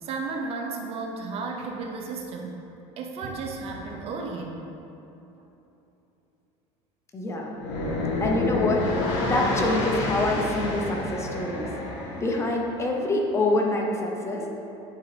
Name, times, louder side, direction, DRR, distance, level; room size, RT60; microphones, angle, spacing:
voice 1, 0.0-2.6 3.0-4.6, right 4 dB, 45° right, 2 dB, 0.7 m, -33 dB
voice 2, 7.1-7.5 8.2-8.9 9.2-11.7 12.1-14.5, left 2 dB, 20° left, 0 dB, 0.8 m, -26 dB
sound 1, 7.5-12.6, left 2 dB, 70° left, 1.4 m, -29 dB
9.4 x 3.9 x 3.3 m, 2.9 s
supercardioid pair, 130°, 14 cm